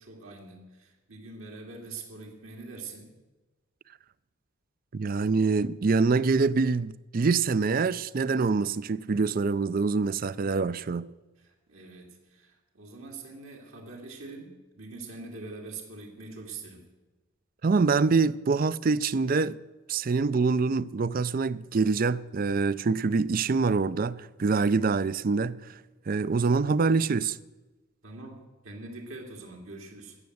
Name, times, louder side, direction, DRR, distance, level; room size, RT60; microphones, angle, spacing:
voice 1, 0.0-3.1 11.4-16.8 28.0-30.2, right 3 dB, 75° right, 2.5 m, -44 dB
voice 2, 4.9-11.1 17.6-19.6 19.9-25.7 26.1-27.4, right 4 dB, 40° right, 0.4 m, -25 dB
14.0 x 9.5 x 7.9 m
head